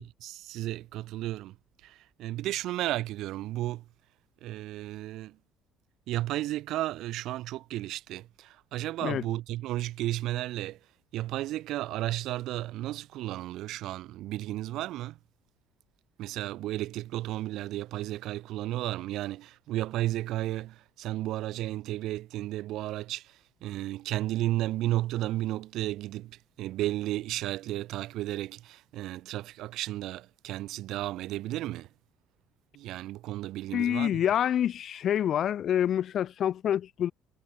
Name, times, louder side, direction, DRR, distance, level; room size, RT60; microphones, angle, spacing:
voice 1, 0.0-1.6 1.8-3.9 4.4-5.4 6.1-10.8 11.1-15.2 16.2-31.9 32.7-34.2, right 15 dB, 70° right, 4.4 m, -33 dB
voice 2, 33.7-37.1, left 10 dB, 55° left, 1.7 m, -27 dB
supercardioid pair, 85°, 0 cm